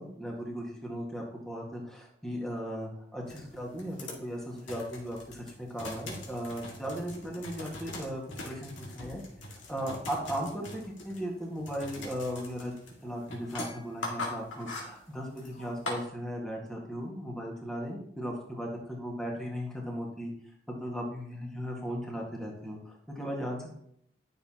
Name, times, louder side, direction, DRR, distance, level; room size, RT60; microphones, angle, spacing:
voice 1, 0.0-9.2 9.7-12.7 13.0-20.3 20.8-23.8, equal, 5° left, -2 dB, 1.7 m, -37 dB
sound 1, 3.3-16.0, left 2 dB, 85° left, 2.1 m, -42 dB
11.5 x 6.7 x 2.9 m, 0.69 s
head